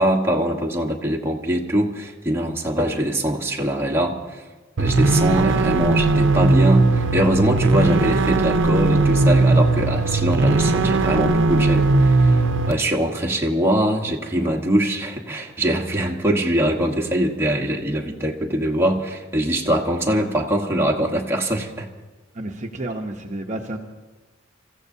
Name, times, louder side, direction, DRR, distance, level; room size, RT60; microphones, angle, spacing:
voice 1, 0.0-4.4 4.8-12.4 12.7-21.9, right 1 dB, 10° right, -1 dB, 1.3 m, -22 dB
sound 1, 4.8-12.7, right 3 dB, 65° right, 0.7 m, -18 dB
voice 2, 22.3-23.8, right 1 dB, 40° right, 2 dB, 0.8 m, -30 dB
28.0 x 14.5 x 2.8 m, 1.3 s
head